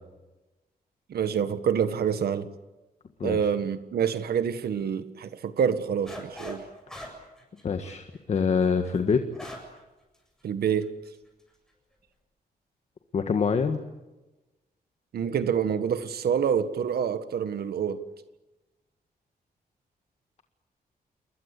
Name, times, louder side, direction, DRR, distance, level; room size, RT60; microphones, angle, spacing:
voice 1, 1.1-2.5 3.2-6.6 10.4-10.9 15.1-18.0, right 7 dB, 80° right, 11 dB, 1.6 m, -27 dB
sound 1, 6.1-6.6 6.9-9.8 10.1-10.2 10.8-11.2, left 1 dB, 5° left, 7.6 m, -42 dB
voice 2, 7.6-9.2 13.1-13.8, left 5 dB, 45° left, 7 dB, 1.7 m, -25 dB
29.0 x 22.0 x 8.5 m, 1.1 s
wide cardioid pair, 180°, 16 cm